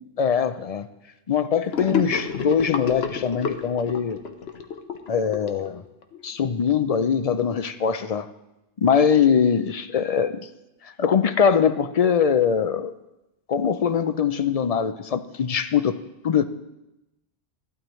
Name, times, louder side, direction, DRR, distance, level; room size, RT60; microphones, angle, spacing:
voice 1, 0.2-0.9 1.3-4.2 5.1-5.8 6.2-8.3 8.8-10.4 11.0-12.9 13.5-16.0 16.2-16.4, left 7 dB, 50° left, 11 dB, 0.5 m, -22 dB
Gurgling / Sink (filling or washing), 1.7-6.2, left 6 dB, 85° left, 1.1 m, -30 dB
14.5 x 12.0 x 3.1 m, 0.94 s
omnidirectional pair, 1.0 m